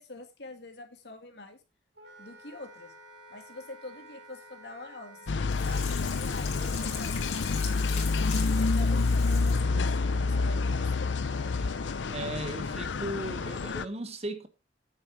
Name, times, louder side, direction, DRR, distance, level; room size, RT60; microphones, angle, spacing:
voice 1, 0.0-1.6 2.2-2.9 3.3-7.4 7.8-8.3 8.6-11.6, left 2 dB, 65° left, 2.2 m, -46 dB
Wind instrument woodwind instrument, 1.9-13.8, right 2 dB, 65° right, 3.4 m, -51 dB
sound 1, 5.3-13.9, left 4 dB, 85° left, 0.5 m, -28 dB
Sink (filling or washing), 5.5-9.7 10.1-10.2, left 6 dB, 40° left, 3.9 m, -41 dB
voice 2, 12.1-14.5, right 1 dB, 35° right, 1.3 m, -36 dB
9.0 x 7.6 x 4.7 m
head